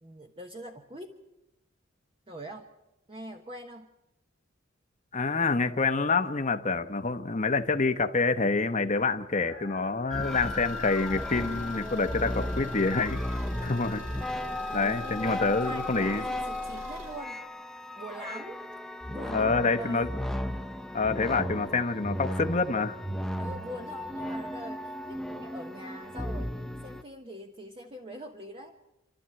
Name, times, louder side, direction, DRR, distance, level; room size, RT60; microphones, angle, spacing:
voice 1, 0.0-1.2 2.3-2.7 3.1-3.9 14.6-17.4 18.0-18.6 19.1-20.1 23.4-26.5 26.8-28.7, equal, 25° right, 3 dB, 1.3 m, -43 dB
voice 2, 5.1-13.2 13.6-14.0 14.7-16.2 19.3-20.1 20.9-23.0, left 3 dB, 35° left, 8 dB, 1.0 m, -27 dB
sound 1, 8.9-11.1 11.4-11.5 12.7-12.8, equal, 50° right, 7.5 m, -51 dB
sound 2, 10.1-27.0, left 1 dB, ahead, 0.8 m, -35 dB
Car / Engine, 10.2-17.2, equal, 75° right, 6.3 m, -44 dB
28.5 x 13.0 x 8.8 m, 0.95 s
head